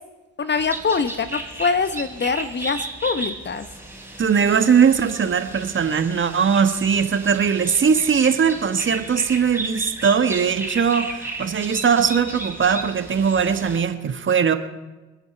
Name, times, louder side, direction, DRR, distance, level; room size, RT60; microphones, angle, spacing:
voice 1, 0.4-3.7, left 5 dB, 30° left, 12 dB, 1.1 m, -24 dB
sound 1, 0.5-13.8, right 2 dB, 5° right, 4.2 m, -34 dB
voice 2, 4.2-14.6, right 6 dB, 35° right, 9 dB, 1.5 m, -20 dB
27.5 x 9.7 x 4.5 m, 1.1 s
hypercardioid pair, 55°, 36 cm